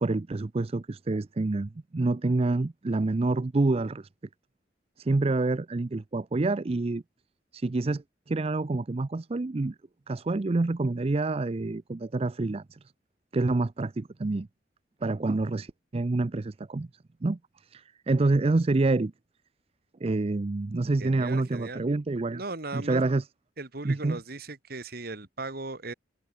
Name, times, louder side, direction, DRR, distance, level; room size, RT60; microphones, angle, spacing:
voice 1, 0.0-4.1 5.0-7.0 7.5-9.8 10.1-12.8 13.3-14.5 15.0-16.9 17.2-19.1 20.0-22.4 22.7-23.2 23.8-24.2, right 2 dB, 30° right, 0.5 m, -27 dB
voice 2, 21.0-21.9 22.3-23.1 23.6-25.9, right 2 dB, 55° right, 2.1 m, -37 dB
head